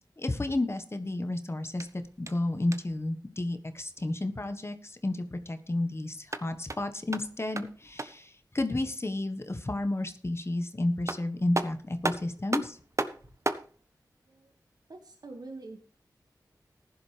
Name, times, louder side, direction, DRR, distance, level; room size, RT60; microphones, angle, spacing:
voice 1, 0.2-1.9 2.2-12.8, left 2 dB, 35° left, 7 dB, 1.4 m, -31 dB
sound 1, 1.7-3.1 6.1-8.3 10.6-10.7 11.1-13.7, right 2 dB, 45° right, 1.2 m, -35 dB
voice 2, 14.9-15.8, right 3 dB, 65° right, 4 dB, 1.9 m, -45 dB
15.0 x 11.0 x 3.4 m, 0.41 s
cardioid pair, 45°, 7 cm